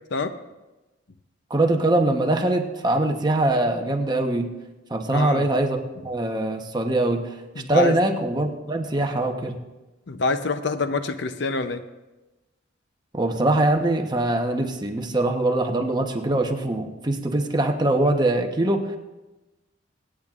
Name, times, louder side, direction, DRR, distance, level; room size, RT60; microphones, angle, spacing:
voice 1, 1.5-4.5 4.9-7.3 7.7-9.6 13.1-18.9, right 2 dB, 20° right, 3 dB, 1.0 m, -22 dB
voice 2, 5.1-5.5 7.6-8.0 10.1-11.8, left 3 dB, 65° left, 10 dB, 0.6 m, -26 dB
25.5 x 8.9 x 2.5 m, 1.1 s
head